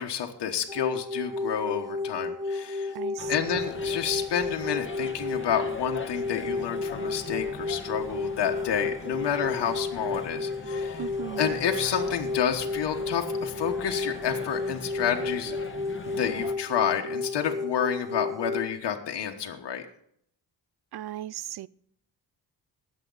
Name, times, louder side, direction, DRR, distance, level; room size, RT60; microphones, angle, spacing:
voice 1, 0.0-2.9 3.3-11.1 11.4-15.6 16.1-19.8, left 8 dB, 90° left, 1.3 m, -29 dB
sound 1, 0.7-18.7, left 3 dB, 10° right, 1.5 m, -32 dB
voice 2, 2.9-3.5 11.0-11.5 20.9-21.7, right 13 dB, 70° right, 0.5 m, -37 dB
sound 2, 3.2-16.5, left 5 dB, 30° left, 1.4 m, -41 dB
19.5 x 7.6 x 3.9 m
wide cardioid pair, 115°, 40 cm